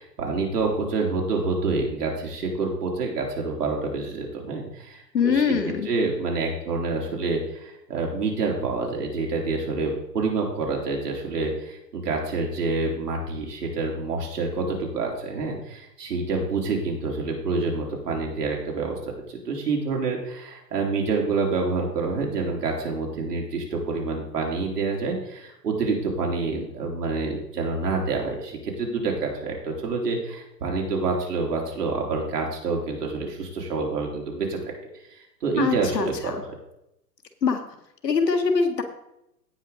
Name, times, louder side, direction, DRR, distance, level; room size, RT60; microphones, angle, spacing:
voice 1, 0.0-18.9 19.3-34.7 35.1-36.3, right 3 dB, 70° right, -1 dB, 3.7 m, -27 dB
voice 2, 5.1-5.9 35.6-36.4 37.4-37.6 38.0-38.8, left 5 dB, 75° left, 5 dB, 1.9 m, -23 dB
17.0 x 5.9 x 3.9 m, 0.81 s
figure-of-eight pair, 115°, 50 cm